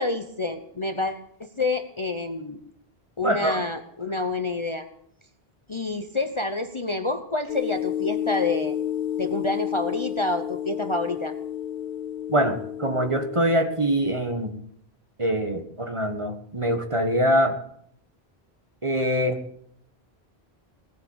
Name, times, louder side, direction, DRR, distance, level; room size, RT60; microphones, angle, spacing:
voice 1, 0.0-2.6 3.2-4.9 5.7-8.8 9.2-11.3, left 2 dB, 30° left, 7 dB, 0.9 m, -28 dB
voice 2, 3.2-3.6 12.3-14.5 15.2-17.5 18.8-19.4, equal, 30° right, 6 dB, 1.5 m, -24 dB
sound 1, 7.5-14.2, left 10 dB, 55° left, 2.3 m, -31 dB
18.5 x 7.8 x 8.8 m, 0.68 s
omnidirectional pair, 1.1 m